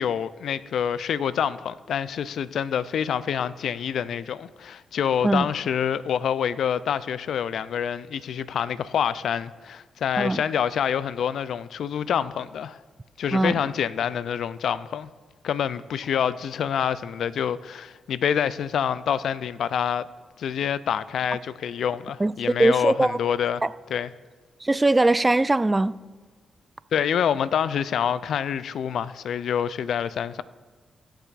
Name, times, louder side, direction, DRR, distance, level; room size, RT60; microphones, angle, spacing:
voice 1, 0.0-12.8 13.2-15.1 15.4-20.1 20.4-23.6 23.9-24.1 26.9-30.4, left 8 dB, 75° left, 0.3 m, -26 dB
voice 2, 22.6-23.2 23.6-23.7 24.6-25.9, right 2 dB, 25° right, 0.3 m, -21 dB
18.0 x 6.9 x 2.5 m
supercardioid pair, 45°, 0 cm